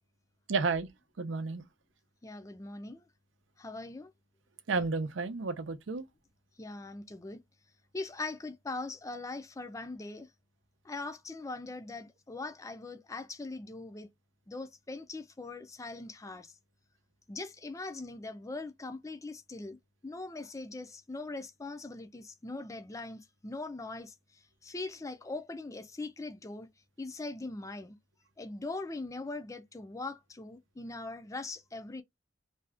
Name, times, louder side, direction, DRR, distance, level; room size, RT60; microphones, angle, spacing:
voice 1, 0.5-0.9 1.2-1.6 4.7-6.1, right 4 dB, 80° right, 0.6 m, -31 dB
voice 2, 2.2-3.1 3.6-4.1 6.6-7.4 7.9-10.3 10.8-14.1 14.5-16.5 17.3-19.8 20.0-24.1 24.6-26.7 27.0-28.0 28.4-32.0, left 3 dB, 15° left, 0.4 m, -41 dB
2.7 x 2.3 x 3.3 m
head